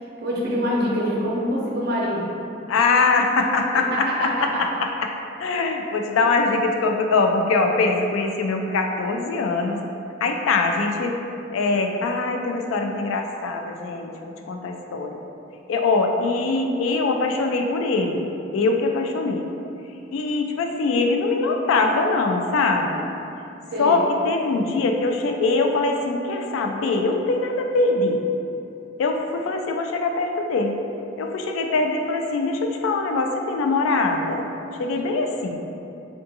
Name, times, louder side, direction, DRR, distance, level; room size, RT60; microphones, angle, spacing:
voice 1, 0.2-2.3 3.7-4.6 23.7-24.0, equal, 50° right, -5 dB, 0.6 m, -25 dB
voice 2, 2.7-4.3 4.6-5.1 5.4-9.8 10.2-11.2 11.5-15.2 15.7-18.3 18.5-19.4 20.1-23.0 23.8-28.2 29.0-30.8 31.2-34.5 34.8-35.6, left 3 dB, 85° left, 3 dB, 0.3 m, -22 dB
3.5 x 2.5 x 2.7 m, 2.7 s
head